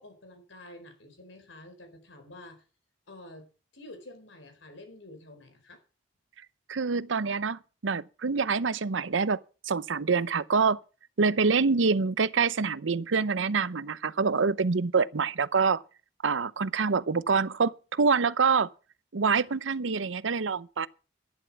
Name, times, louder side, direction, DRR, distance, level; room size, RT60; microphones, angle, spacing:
voice 1, 0.0-2.6 3.1-3.5 3.7-5.8 19.4-19.5, left 1 dB, 85° left, 4.6 m, -49 dB
voice 2, 6.7-9.4 9.6-10.8 11.2-15.8 16.2-18.7 19.1-20.9, right 5 dB, 90° right, 0.7 m, -26 dB
11.5 x 11.0 x 5.9 m
head